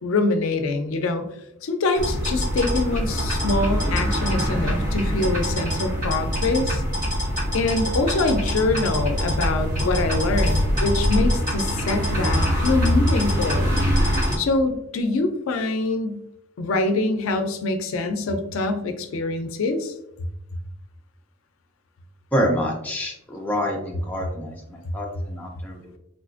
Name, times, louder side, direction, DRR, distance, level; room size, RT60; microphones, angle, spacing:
voice 1, 0.0-1.3 1.6-6.8 7.5-13.7 14.4-16.2 16.6-19.9, left 3 dB, 85° left, 6 dB, 0.4 m, -24 dB
sound 1, 1.9-14.4, equal, 40° right, 1.1 m, -23 dB
voice 2, 22.3-26.0, equal, 10° left, -1 dB, 0.5 m, -27 dB
3.7 x 2.4 x 2.4 m, 0.81 s
head